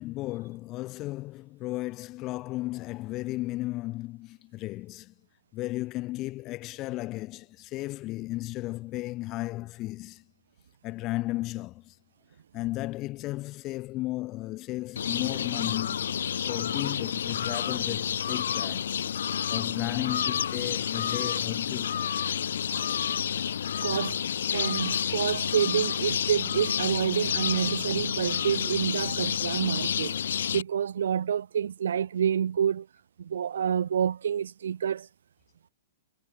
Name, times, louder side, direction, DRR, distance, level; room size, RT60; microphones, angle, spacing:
voice 1, 0.0-5.1 5.5-10.2 10.8-11.9 12.5-16.1 16.5-22.0, left 18 dB, 30° left, 2.8 m, -34 dB
sound 1, 15.0-30.6, left 8 dB, 80° left, 5.1 m, -30 dB
voice 2, 23.8-24.2 24.5-30.2 30.5-32.9 33.2-35.1, right 8 dB, 80° right, 1.1 m, -28 dB
hypercardioid pair, 140°, 0 cm